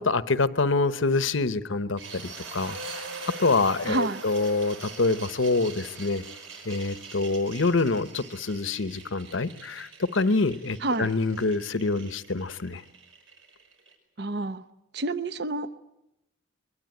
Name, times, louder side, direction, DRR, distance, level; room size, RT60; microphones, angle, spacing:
voice 1, 0.0-3.0 3.4-6.2 6.6-12.8, left 3 dB, 75° left, 13 dB, 1.0 m, -26 dB
sound 1, 2.0-13.9, right 3 dB, 80° right, 5.3 m, -43 dB
voice 2, 3.9-4.2 10.8-11.1 14.2-14.6 14.9-15.8, right 2 dB, 55° right, 13 dB, 0.8 m, -29 dB
22.5 x 22.5 x 9.3 m, 0.89 s
head